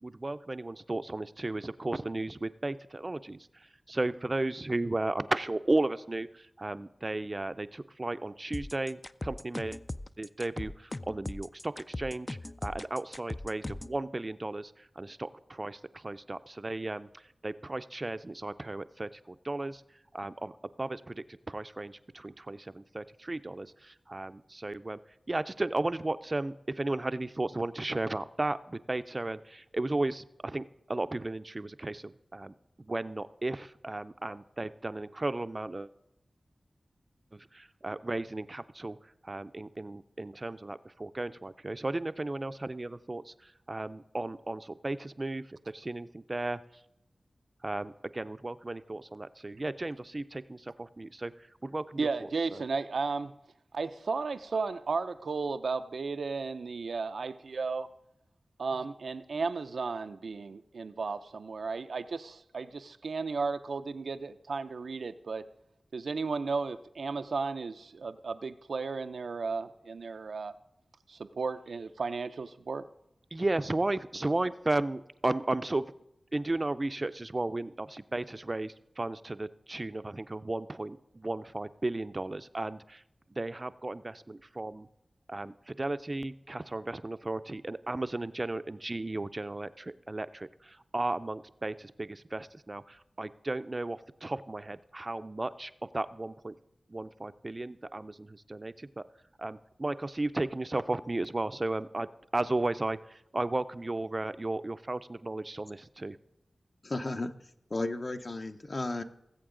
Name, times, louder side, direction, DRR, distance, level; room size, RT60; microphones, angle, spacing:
voice 1, 0.0-9.8 10.2-19.8 20.1-20.5 20.8-25.0 25.3-35.9 37.3-39.0 39.2-46.6 47.6-52.1 52.5-52.6 73.3-75.8 76.3-83.0 83.3-84.9 85.3-96.6 96.9-99.1 99.4-106.2, right 2 dB, 35° right, 13 dB, 0.4 m, -35 dB
sound 1, 8.5-14.0, left 2 dB, 30° left, 0.3 m, -39 dB
voice 2, 52.0-53.3 53.7-57.9 58.6-65.4 65.9-70.5 71.1-72.9, right 4 dB, 85° right, 10 dB, 0.5 m, -34 dB
voice 3, 106.8-107.3 107.7-109.0, left 2 dB, 45° left, 8 dB, 0.7 m, -33 dB
18.5 x 7.9 x 3.8 m, 0.85 s
wide cardioid pair, 60°, 0 cm